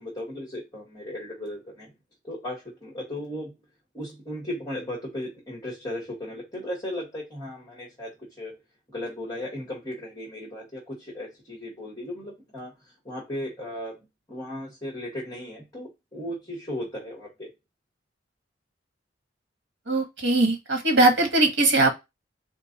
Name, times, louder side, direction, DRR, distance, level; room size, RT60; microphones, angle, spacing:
voice 1, 0.0-1.9 2.2-3.5 3.9-8.5 8.9-12.7 13.1-14.0 14.3-17.5, left 1 dB, 20° left, 1.7 m, -36 dB
voice 2, 19.9-21.9, right 2 dB, 70° right, 1.4 m, -20 dB
3.6 x 3.0 x 4.0 m
head